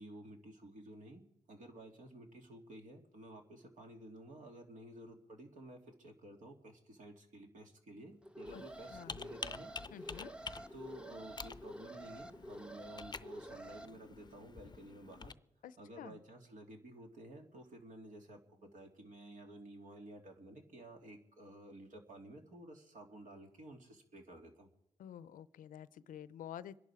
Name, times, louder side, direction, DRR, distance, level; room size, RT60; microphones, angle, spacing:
voice 1, 0.0-10.3 10.7-15.4 15.8-24.7, right 1 dB, 70° right, 2 dB, 2.7 m, -53 dB
Alarm, 8.2-13.9, right 1 dB, 5° right, 0.7 m, -49 dB
Computer keyboard, 8.4-15.3, left 4 dB, 30° left, 0.6 m, -49 dB
voice 2, 8.9-9.2 9.9-10.3 15.6-16.2 25.0-26.8, left 10 dB, 85° left, 17 dB, 0.6 m, -49 dB
25.5 x 11.0 x 4.9 m, 0.78 s
cardioid pair, 55°, 13 cm